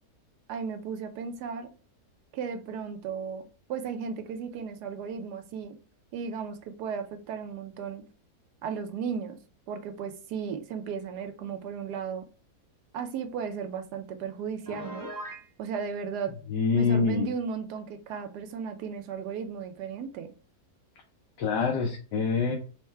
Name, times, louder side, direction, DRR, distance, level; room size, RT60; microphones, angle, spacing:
voice 1, 0.5-1.7 2.3-5.8 6.1-8.0 8.6-9.4 9.7-12.2 12.9-15.1 15.6-16.3 16.7-20.3, right 6 dB, 75° right, 1.2 m, -35 dB
Piano, 14.6-15.5, right 1 dB, 25° right, 0.4 m, -39 dB
voice 2, 16.5-17.3 21.4-22.6, left 5 dB, 85° left, 1.3 m, -25 dB
4.6 x 2.2 x 4.2 m
omnidirectional pair, 1.8 m